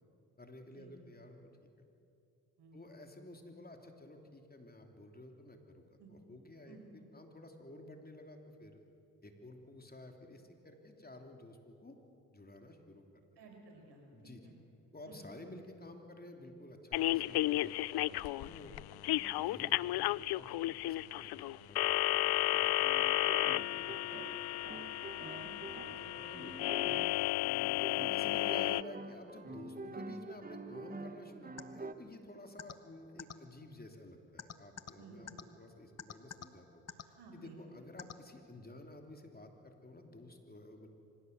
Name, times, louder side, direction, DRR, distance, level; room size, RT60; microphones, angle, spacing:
voice 1, 0.4-1.5 2.7-8.8 9.2-12.0 12.3-13.0 14.1-14.5 14.9-18.7 19.1-22.2 22.5-23.5 23.8-24.6 25.0-26.9 28.1-35.3 35.6-36.8 37.3-40.9, left 1 dB, 20° left, 4 dB, 3.1 m, -53 dB
voice 2, 13.4-14.5 15.1-15.2 23.7-23.8 25.3-25.6 26.0-26.2 27.6-27.8 35.0-35.4 36.9-37.6, right 3 dB, 70° right, 2 dB, 5.3 m, -56 dB
sound 1, 16.9-28.8, left 17 dB, 65° left, 0.5 m, -33 dB
sound 2, 20.6-20.8 22.8-31.9, right 3 dB, 20° right, 1.2 m, -47 dB
sound 3, 31.6-31.7 32.6-32.7 33.2-33.3 34.4-34.9 35.3-35.4 36.0-36.5 36.9-37.0 38.0-38.1, left 7 dB, 40° left, 1.3 m, -44 dB
25.5 x 16.5 x 8.0 m, 2.6 s
supercardioid pair, 65°, 41 cm